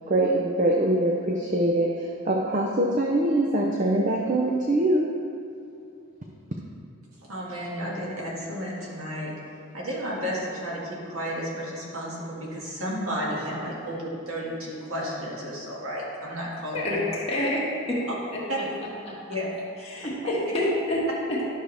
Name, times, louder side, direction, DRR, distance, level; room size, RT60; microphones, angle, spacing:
voice 1, 0.1-5.0, right 1 dB, 35° right, -1 dB, 0.6 m, -23 dB
voice 2, 7.2-9.3 9.7-17.0 18.5-18.6 19.3-19.5, equal, 80° right, -5 dB, 2.1 m, -32 dB
voice 3, 16.7-18.0 18.3-18.6 19.1-19.2 19.8-21.4, left 1 dB, 30° left, -6 dB, 1.8 m, -27 dB
11.5 x 6.4 x 3.4 m, 2.6 s
head